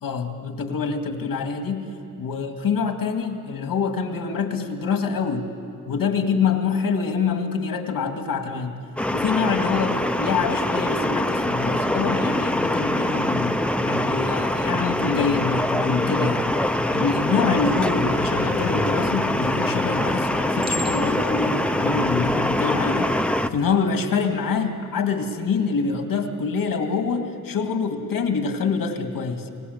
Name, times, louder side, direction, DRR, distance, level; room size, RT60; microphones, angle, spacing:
voice 1, 0.0-1.9 2.2-5.5 5.9-8.7 9.1-16.5 16.9-29.5, left 5 dB, 90° left, 5 dB, 2.2 m, -25 dB
sound 1, 9.0-23.5, left 1 dB, 5° left, 0.7 m, -24 dB
Motorcycle, 11.2-23.7, left 6 dB, 40° left, 0.8 m, -40 dB
Chink clink, 19.3-19.6 20.6-21.4 22.1-22.4, left 1 dB, 15° right, 1.3 m, -33 dB
30.0 x 19.0 x 8.1 m, 2.4 s
wide cardioid pair, 115°, 33 cm